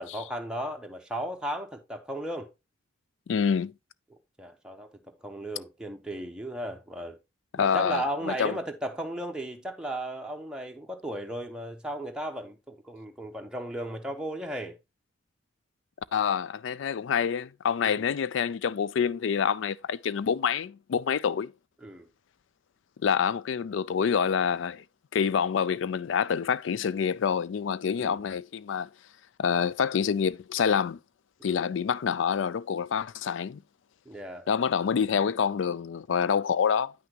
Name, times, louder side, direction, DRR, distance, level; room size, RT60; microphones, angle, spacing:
voice 1, 0.0-2.5 4.1-7.2 7.6-14.7 17.8-18.0 21.8-22.1 28.0-28.2 31.4-31.7 34.0-34.5, right 1 dB, 5° right, 0.9 m, -35 dB
voice 2, 3.3-3.7 7.5-8.6 16.1-21.5 23.0-24.8 25.1-28.9 29.4-31.0 31.4-33.6 34.5-36.9, left 7 dB, 75° left, 0.4 m, -27 dB
9.1 x 5.9 x 2.9 m
head